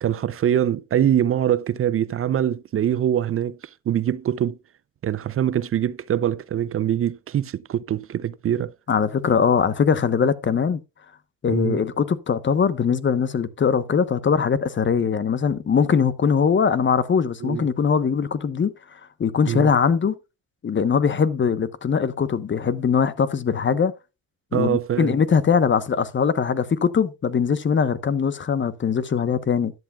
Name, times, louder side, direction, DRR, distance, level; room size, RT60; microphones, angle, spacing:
voice 1, 0.0-3.6 3.9-4.6 5.0-8.7 11.5-11.8 17.4-17.7 19.5-19.7 24.5-25.2, right 10 dB, 45° right, 0.6 m, -23 dB
voice 2, 8.9-10.8 11.4-20.1 20.6-23.9 24.5-29.7, left 6 dB, 40° left, 1.1 m, -21 dB
13.0 x 11.0 x 2.3 m
cardioid pair, 90°, 30 cm